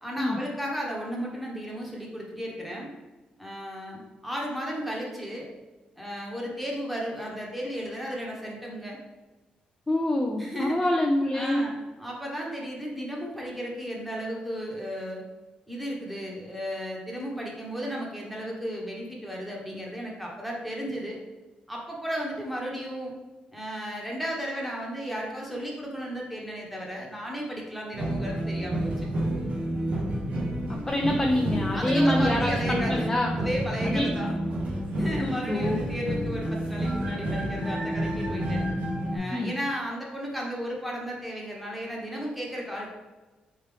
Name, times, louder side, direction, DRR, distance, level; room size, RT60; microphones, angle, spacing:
voice 1, 0.0-2.9 3.4-5.5 6.0-9.0 10.4-10.8 11.3-15.2 15.7-21.2 21.7-23.1 23.5-29.1 31.7-33.1 33.4-34.4 35.0-38.7 39.1-42.9, equal, ahead, -2 dB, 1.1 m, -34 dB
voice 2, 9.9-11.7 30.7-33.3 33.8-34.1 35.0-35.8 39.3-39.5, left 1 dB, 15° left, 1 dB, 0.4 m, -26 dB
sound 1, 27.9-39.2, right 1 dB, 55° right, 1.0 m, -29 dB
4.3 x 3.7 x 3.3 m, 1.2 s
cardioid pair, 115°, 3 cm